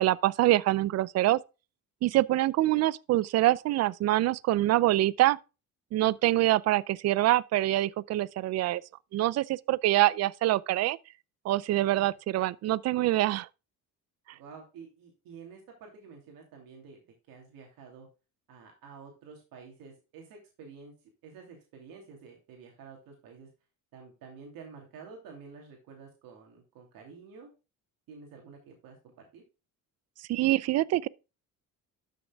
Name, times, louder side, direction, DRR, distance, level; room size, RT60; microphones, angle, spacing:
voice 1, 0.0-1.4 2.0-5.4 5.9-8.8 9.1-11.0 11.4-13.5 30.3-31.1, right 15 dB, 45° right, 0.4 m, -25 dB
voice 2, 11.7-12.1 14.3-18.1 18.5-23.5 23.9-27.5 28.1-29.4, right 5 dB, 70° right, 2.8 m, -50 dB
12.5 x 6.5 x 2.3 m
cardioid pair, 125°, 35 cm